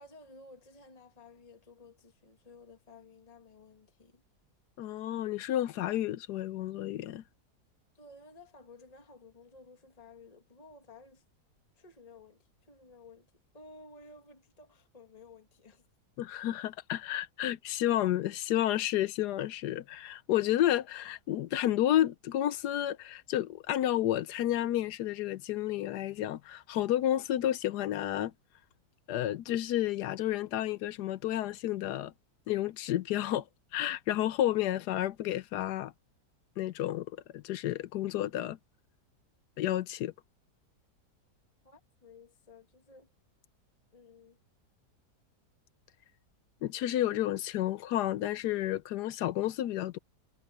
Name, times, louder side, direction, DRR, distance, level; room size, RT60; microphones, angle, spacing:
voice 1, 0.0-4.2 7.9-11.2 11.7-13.3 13.5-15.9 16.6-16.7 41.6-43.1 43.9-44.4, left 3 dB, 25° left, 1.8 m, -55 dB
voice 2, 4.8-7.2 16.2-28.3 29.1-32.1 32.5-33.4 33.7-35.9 36.6-37.1 37.3-38.6 39.6-40.1 46.6-50.0, left 13 dB, 80° left, 1.2 m, -31 dB
omnidirectional pair, 1.8 m